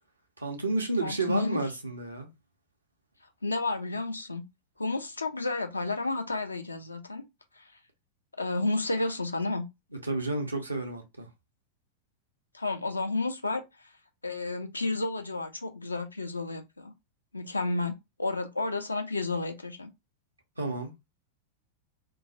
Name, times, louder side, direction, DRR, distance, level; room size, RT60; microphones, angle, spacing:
voice 1, 0.4-2.3 10.0-11.3 20.6-20.9, right 2 dB, 80° right, 0.6 m, -31 dB
voice 2, 1.0-1.6 3.4-4.4 4.8-7.2 7.6-7.7 8.4-9.7 12.5-13.6 14.2-16.9 17.3-19.9, left 3 dB, 80° left, 0.4 m, -31 dB
2.2 x 2.1 x 2.7 m
figure-of-eight pair, 90°, 0 cm